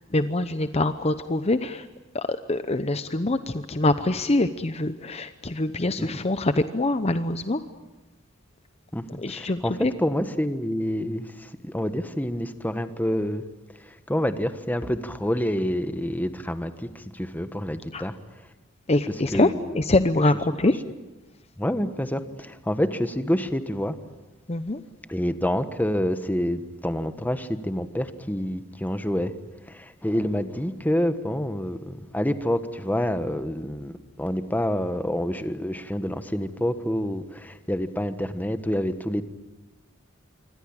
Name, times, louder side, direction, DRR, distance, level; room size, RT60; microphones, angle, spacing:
voice 1, 0.0-1.9 2.1-7.6 9.2-9.9 17.9-18.0 18.9-20.8 24.5-24.8, left 2 dB, 35° left, 10 dB, 0.8 m, -24 dB
voice 2, 8.9-13.4 13.8-18.2 19.3-19.7 21.6-24.0 25.1-29.3 29.7-39.2, equal, 10° left, 10 dB, 1.4 m, -27 dB
26.5 x 24.0 x 8.8 m, 1.1 s
head